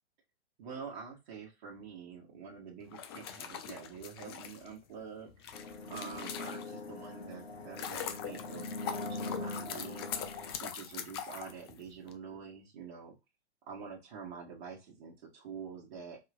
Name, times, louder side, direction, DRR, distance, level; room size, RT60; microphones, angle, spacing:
voice 1, 0.6-13.1 13.7-16.2, right 6 dB, 45° right, -2 dB, 1.4 m, -47 dB
sound 1, 2.8-7.0 7.4-12.1, left 8 dB, 25° left, 0.4 m, -42 dB
sound 2, 5.5-10.5, left 3 dB, 65° left, 1.2 m, -42 dB
4.9 x 3.0 x 2.4 m, 0.24 s
figure-of-eight pair, 115°, 33 cm